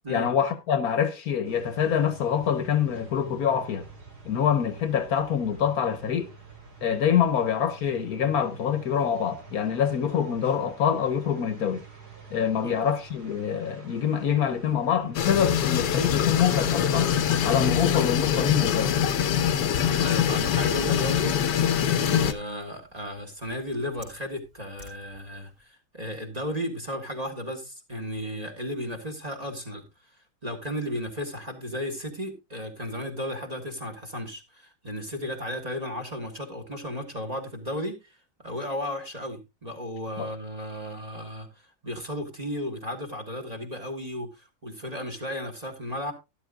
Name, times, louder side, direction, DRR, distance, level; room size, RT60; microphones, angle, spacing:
voice 1, 0.1-3.9 4.2-6.3 6.8-11.8 12.3-17.1 17.4-18.9 40.2-40.3, left 8 dB, 65° left, 1.4 m, -25 dB
sound 1, 1.4-17.9, right 5 dB, 70° right, 3.4 m, -48 dB
sound 2, 15.1-22.3, left 9 dB, 80° left, 1.5 m, -24 dB
voice 2, 20.0-29.8 30.4-41.5 41.8-46.1, equal, 25° right, 1.6 m, -34 dB
Liquid, 22.5-25.6, left 1 dB, 45° right, 4.0 m, -47 dB
12.5 x 11.5 x 2.3 m
omnidirectional pair, 1.8 m